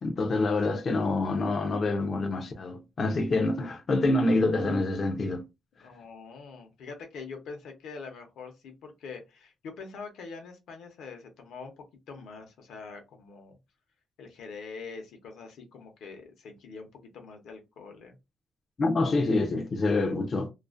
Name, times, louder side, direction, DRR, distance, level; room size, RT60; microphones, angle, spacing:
voice 1, 0.0-5.4 18.8-20.5, left 2 dB, 35° left, 0.3 m, -26 dB
voice 2, 5.8-13.6 14.2-18.2, left 4 dB, 85° left, 0.7 m, -44 dB
2.4 x 2.4 x 2.4 m
wide cardioid pair, 175°, 0 cm